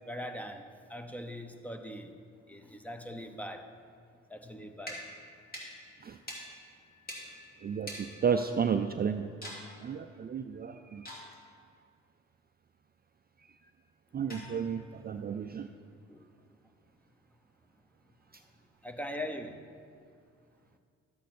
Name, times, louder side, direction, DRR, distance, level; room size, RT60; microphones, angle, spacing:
voice 1, 0.1-2.2 2.5-3.7 4.3-5.1 15.4-15.6 16.1-16.3 18.8-19.7, equal, 5° left, 6 dB, 0.8 m, -41 dB
sound 1, 4.8-8.9 9.4-9.7 11.1-11.6 14.3-14.9, equal, 30° left, 2.8 m, -46 dB
voice 2, 7.6-9.3 9.8-11.1 14.1-15.7 18.3-18.4, right 6 dB, 30° right, 7 dB, 0.4 m, -32 dB
12.5 x 8.2 x 4.3 m, 2.2 s
cardioid pair, 90°, 30 cm